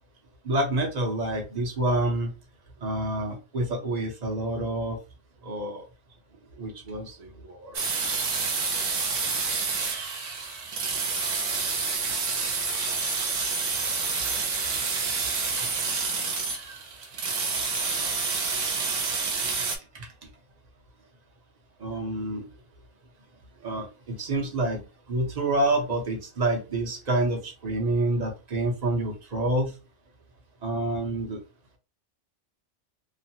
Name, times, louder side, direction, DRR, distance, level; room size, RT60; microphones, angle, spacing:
voice 1, 0.4-2.3 2.8-5.0 5.4-5.8 6.6-7.8 15.5-15.6 19.5-19.6 19.9-20.1 21.8-22.5 23.6-24.8 25.1-29.7 30.6-31.4, right 2 dB, 40° right, 1 dB, 0.7 m, -28 dB
sound 1, 7.7-19.8, right 4 dB, 80° right, 1.0 m, -28 dB
2.9 x 2.0 x 2.8 m, 0.32 s
omnidirectional pair, 1.3 m